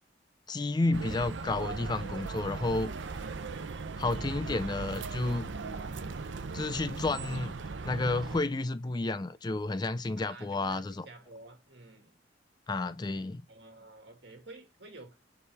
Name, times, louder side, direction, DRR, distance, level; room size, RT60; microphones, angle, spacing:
voice 1, 0.5-2.9 4.0-5.5 6.5-7.6 7.8-11.1 12.7-13.4, left 2 dB, 20° left, 0.4 m, -31 dB
sound 1, 0.9-8.4, right 4 dB, 85° right, 0.6 m, -38 dB
voice 2, 10.2-12.2 13.5-15.2, right 2 dB, 65° right, 2.1 m, -50 dB
6.9 x 4.9 x 3.4 m
head